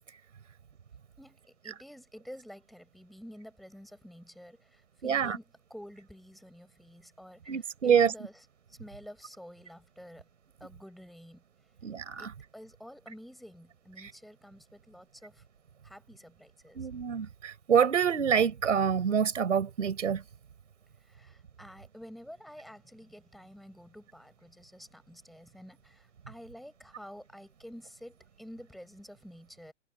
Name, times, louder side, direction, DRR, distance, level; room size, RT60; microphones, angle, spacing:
voice 1, 1.6-8.4 8.7-10.2 10.6-11.4 12.2-15.4 15.8-16.9 21.1-29.7, equal, ahead, 5.8 m, -50 dB
voice 2, 5.0-5.4 7.5-8.1 11.8-12.3 14.0-14.1 16.7-20.2, right 7 dB, 80° right, 4.9 m, -26 dB
hypercardioid pair, 180°, 37 cm